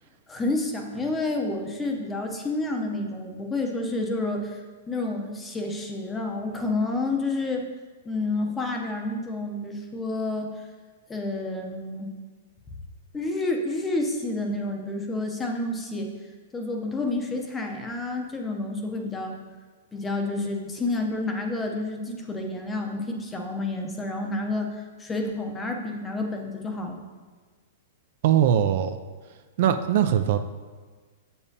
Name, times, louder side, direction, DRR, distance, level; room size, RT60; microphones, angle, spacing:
voice 1, 0.3-4.6 4.9-7.6 8.1-10.5 11.1-12.1 13.1-16.1 16.5-19.4 19.9-27.0, left 2 dB, 10° left, 3 dB, 0.6 m, -29 dB
voice 2, 28.2-29.0 29.6-30.4, right 10 dB, 50° right, 8 dB, 0.3 m, -21 dB
7.0 x 7.0 x 2.7 m, 1.4 s
hypercardioid pair, 165°, 0 cm